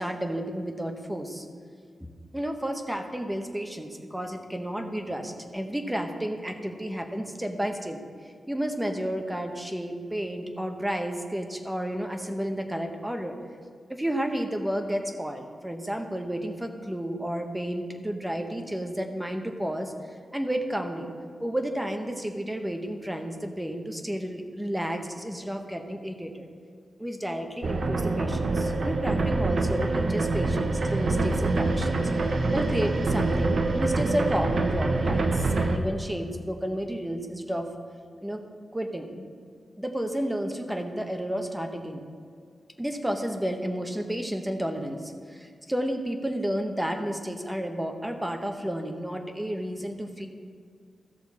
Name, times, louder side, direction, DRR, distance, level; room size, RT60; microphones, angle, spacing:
voice 1, 0.0-1.5 2.0-8.0 8.5-13.4 13.9-21.1 21.4-26.5 27.0-32.0 32.3-37.7 38.2-38.4 38.7-39.3 39.8-42.0 42.8-50.3, equal, 10° right, 4 dB, 1.0 m, -31 dB
sound 1, 27.6-35.8, right 2 dB, 55° right, 0.8 m, -25 dB
14.5 x 6.6 x 4.2 m, 2.1 s
wide cardioid pair, 115°, 0 cm